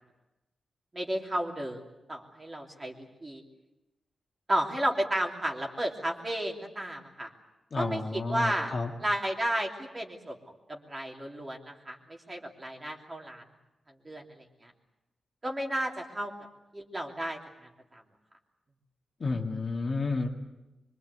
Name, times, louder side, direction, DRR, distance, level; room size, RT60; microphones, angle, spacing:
voice 1, 0.9-1.8 2.1-3.4 4.5-7.3 7.7-8.7 9.0-10.4 10.7-13.4 14.0-14.7 15.4-16.3 16.7-18.0, right 1 dB, 20° right, 1 dB, 3.0 m, -33 dB
voice 2, 7.7-8.9 19.2-20.3, left 3 dB, 35° left, 1 dB, 2.3 m, -31 dB
24.5 x 24.0 x 8.2 m, 0.99 s
wide cardioid pair, 165°, 0 cm